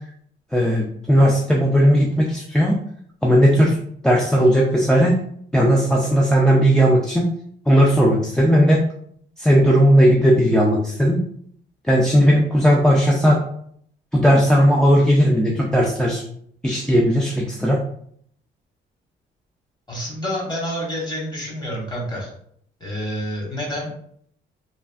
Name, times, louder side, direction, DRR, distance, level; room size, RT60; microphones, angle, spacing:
voice 1, 0.5-2.8 3.2-3.8 4.0-5.2 5.5-7.3 7.7-8.8 9.4-11.2 11.9-13.4 14.1-16.2 16.6-17.8, equal, 5° left, -3 dB, 0.4 m, -16 dB
voice 2, 19.9-22.3 22.8-23.9, equal, 20° left, -3 dB, 1.4 m, -28 dB
3.2 x 2.4 x 2.4 m, 0.65 s
cardioid pair, 90°, 20 cm